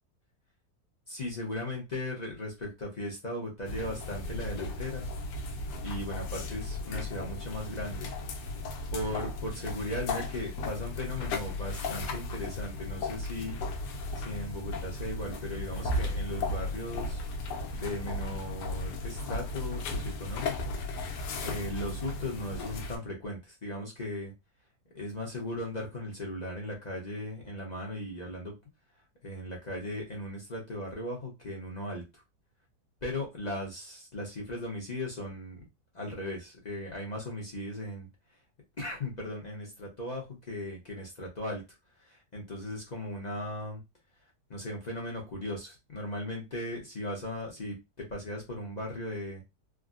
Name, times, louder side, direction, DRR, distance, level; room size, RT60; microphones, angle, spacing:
voice 1, 1.1-5.1 5.8-8.1 8.9-13.6 14.1-17.2 17.7-20.8 21.4-24.3 24.9-28.5 29.2-32.2 33.0-35.6 35.9-38.1 38.8-43.8 44.5-49.4, left 1 dB, 50° left, -2 dB, 0.5 m, -37 dB
sound 1, 3.6-23.0, left 2 dB, 85° left, 1.2 m, -35 dB
3.5 x 2.0 x 2.4 m, 0.23 s
omnidirectional pair, 1.8 m